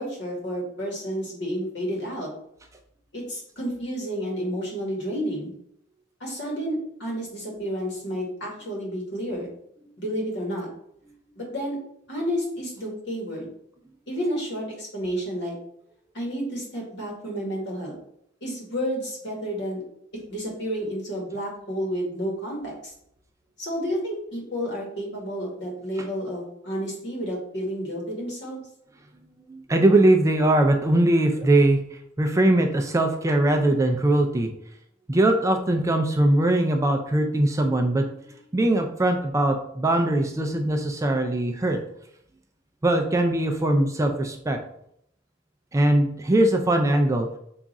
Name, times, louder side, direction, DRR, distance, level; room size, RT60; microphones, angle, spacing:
voice 1, 0.0-2.3 3.1-5.5 6.2-9.5 10.0-10.7 11.4-11.8 12.1-13.5 14.1-15.5 16.1-17.9 18.4-19.8 20.3-22.7 23.6-28.6, equal, 65° left, -2 dB, 1.4 m, -30 dB
voice 2, 29.5-34.5 35.1-38.1 38.5-41.8 42.8-44.6 45.7-47.3, right 1 dB, 15° right, 4 dB, 0.3 m, -21 dB
3.6 x 2.4 x 4.0 m, 0.72 s
head